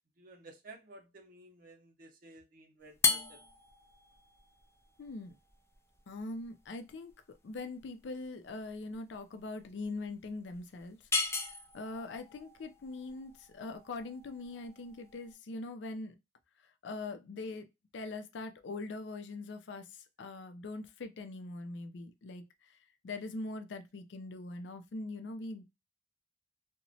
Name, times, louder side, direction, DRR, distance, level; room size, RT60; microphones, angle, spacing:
voice 1, 0.2-3.4, right 2 dB, 50° right, 0.6 m, -54 dB
sound 1, 2.9-15.3, left 4 dB, 15° left, 0.3 m, -38 dB
voice 2, 5.0-5.3 6.1-7.1 7.4-11.0 11.7-16.2 16.8-17.7 17.9-19.9 20.2-22.4 23.0-25.6, left 2 dB, 80° left, 0.4 m, -42 dB
2.9 x 2.1 x 2.6 m
head